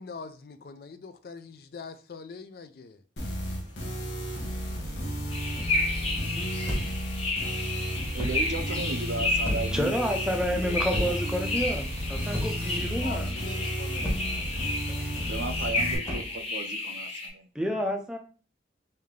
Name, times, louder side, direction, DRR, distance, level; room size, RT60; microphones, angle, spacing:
voice 1, 0.0-3.0 13.0-14.2, left 4 dB, 55° left, 0.3 m, -43 dB
sound 1, 3.2-16.0, equal, 80° left, 1.1 m, -33 dB
sound 2, 5.3-17.3, left 2 dB, 30° left, 0.7 m, -32 dB
sound 3, 6.6-7.1 8.2-8.5 9.4-9.8 10.9-11.3 12.3-12.7 14.0-14.4 16.0-16.4, equal, 15° left, 1.1 m, -32 dB
voice 2, 8.1-9.9 10.5-11.1 15.3-17.5, right 3 dB, 75° right, 0.5 m, -35 dB
voice 3, 9.7-13.3 14.9-15.1 17.5-18.2, equal, 5° right, 0.5 m, -30 dB
3.3 x 2.7 x 3.6 m
head